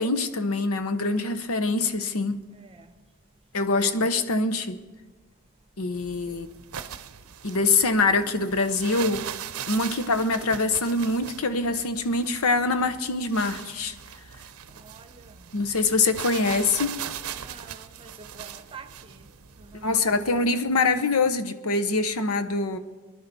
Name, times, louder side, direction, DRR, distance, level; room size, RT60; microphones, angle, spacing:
voice 1, 0.0-2.4 3.5-4.8 5.8-6.5 7.4-9.3 9.7-13.9 15.5-17.0 19.8-22.8, left 3 dB, 80° left, 0.9 m, -24 dB
voice 2, 2.5-2.9 3.7-4.1 6.3-6.5 14.7-15.5 17.3-20.6, right 5 dB, 25° right, 0.8 m, -49 dB
sound 1, 5.9-20.5, right 9 dB, 80° right, 0.6 m, -40 dB
24.0 x 11.0 x 4.1 m
head